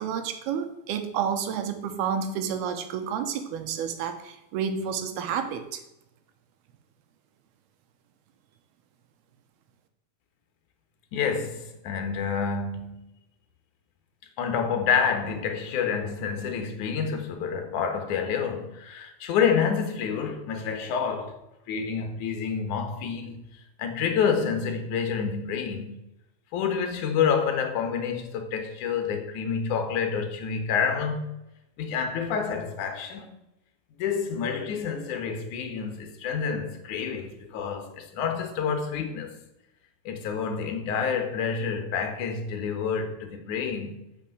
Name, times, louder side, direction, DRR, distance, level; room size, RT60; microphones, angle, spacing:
voice 1, 0.0-5.8, right 7 dB, 90° right, 3.0 m, -30 dB
voice 2, 11.1-13.0 14.4-21.4 21.7-23.4 23.8-26.0 26.5-31.3 31.8-33.3 34.0-39.4 40.1-44.0, left 6 dB, 65° left, 2.4 m, -28 dB
8.5 x 6.5 x 7.7 m
omnidirectional pair, 4.3 m